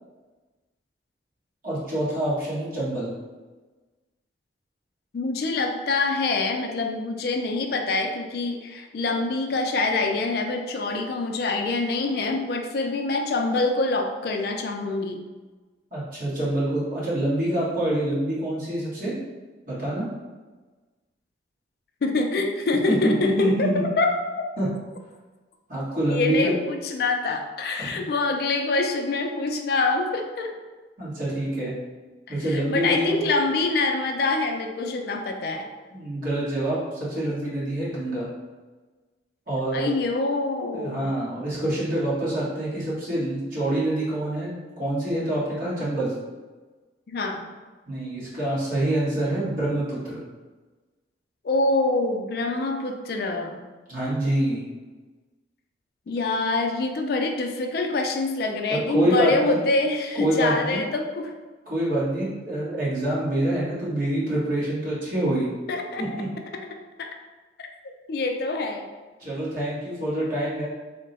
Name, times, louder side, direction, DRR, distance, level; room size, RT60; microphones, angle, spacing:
voice 1, 1.6-3.1 15.9-19.1 19.7-20.1 23.0-23.8 24.6-24.7 25.7-26.5 27.8-27.9 31.0-31.7 32.3-33.2 35.9-38.2 39.5-39.9 40.7-44.5 44.8-46.1 47.9-50.2 53.9-54.7 58.9-59.6 60.1-60.8 61.6-65.5 66.0-66.3 69.2-70.7, right 1 dB, 50° right, -8 dB, 1.5 m, -26 dB
voice 2, 5.1-15.2 22.0-24.1 26.1-30.5 32.3-35.7 39.7-41.1 47.1-47.5 51.4-53.6 56.1-61.3 65.7-66.1 67.0-67.1 67.6-68.9, left 3 dB, 60° left, 4 dB, 0.4 m, -25 dB
3.6 x 2.1 x 4.0 m, 1.3 s
head